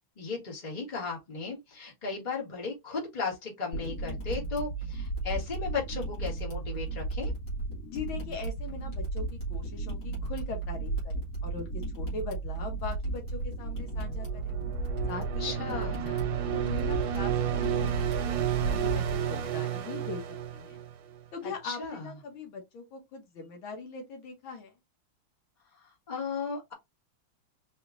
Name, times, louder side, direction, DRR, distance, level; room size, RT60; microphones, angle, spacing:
voice 1, 0.2-7.3 15.1-16.1 21.4-22.0 25.7-26.7, left 4 dB, 25° left, 1.7 m, -36 dB
sound 1, 3.7-19.1, right 3 dB, 55° left, 2.5 m, -34 dB
voice 2, 7.9-14.6 15.1-17.9 18.2-20.8 21.3-24.7, left 4 dB, 75° left, 1.9 m, -41 dB
sound 2, 13.9-21.2, right 9 dB, 70° right, 1.4 m, -32 dB
4.9 x 2.8 x 2.5 m
omnidirectional pair, 2.3 m